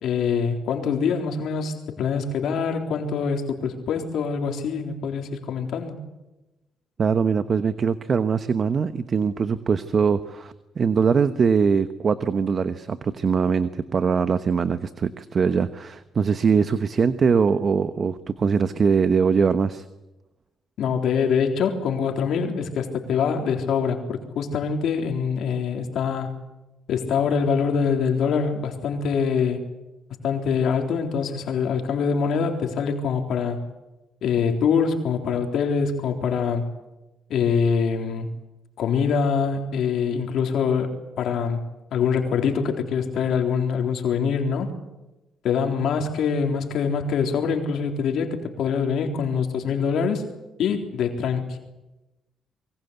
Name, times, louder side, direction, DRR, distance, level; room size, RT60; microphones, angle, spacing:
voice 1, 0.0-6.0 20.8-26.3 26.9-29.7 30.2-33.6 34.2-36.7 37.3-38.3 38.8-40.9 41.2-41.6 41.9-44.7 45.4-50.2 50.6-51.6, left 6 dB, 75° left, 4 dB, 3.8 m, -24 dB
voice 2, 7.0-19.8, right 6 dB, 45° right, 11 dB, 1.1 m, -22 dB
27.0 x 23.5 x 8.2 m, 1.0 s
cardioid pair, 90°, 0 cm